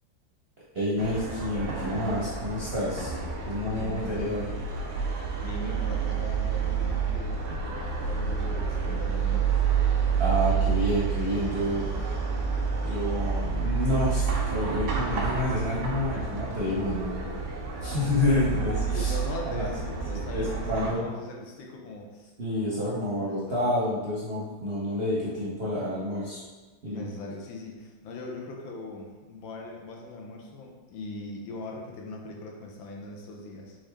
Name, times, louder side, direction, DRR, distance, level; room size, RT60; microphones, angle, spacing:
voice 1, 0.7-3.1 3.5-4.5 10.2-11.9 12.8-17.2 17.8-19.2 19.5-19.7 20.1-21.1 22.4-26.4 26.8-27.0, left 1 dB, 50° right, -8 dB, 0.7 m, -29 dB
sound 1, 1.0-20.9, right 5 dB, 85° right, 0.6 m, -29 dB
voice 2, 3.6-4.5 5.4-9.6 17.9-22.3 23.2-23.6 26.9-33.8, left 3 dB, 80° left, 0 dB, 1.5 m, -40 dB
4.1 x 3.6 x 3.4 m, 1.3 s
omnidirectional pair, 2.1 m